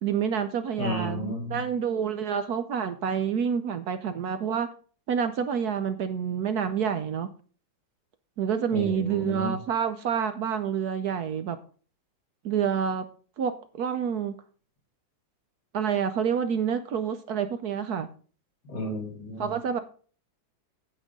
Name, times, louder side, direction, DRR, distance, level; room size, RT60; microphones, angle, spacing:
voice 1, 0.0-4.7 5.1-7.3 8.4-11.6 12.4-13.1 13.4-14.3 15.7-18.1 19.4-19.8, right 7 dB, 65° right, 10 dB, 1.1 m, -28 dB
voice 2, 0.8-1.6 8.7-9.5 18.6-19.5, left 2 dB, 60° left, 0 dB, 4.2 m, -32 dB
9.1 x 8.6 x 3.7 m, 0.40 s
omnidirectional pair, 2.0 m